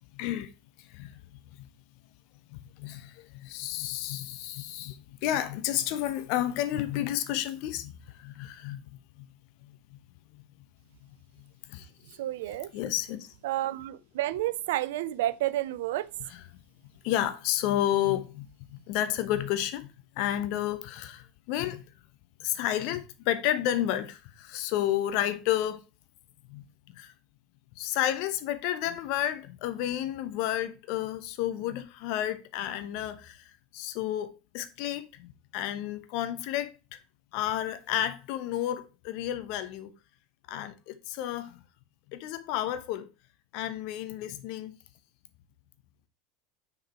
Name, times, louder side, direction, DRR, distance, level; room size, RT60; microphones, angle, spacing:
voice 1, 0.1-0.5 0.8-1.2 1.6-1.7 2.5-9.3 9.6-10.0 10.3-10.4 11.4-11.9 12.7-13.3 16.3-16.4 17.0-21.8 22.4-25.8 26.5-26.6 26.9-27.1 27.8-36.7 37.3-39.9 40.5-41.6 42.1-43.1 43.5-44.7, left 12 dB, 60° left, 0.9 m, -31 dB
voice 2, 12.2-12.7 13.4-16.1, right 14 dB, 70° right, 0.4 m, -30 dB
6.4 x 4.8 x 4.4 m
hypercardioid pair, 80°, 0 cm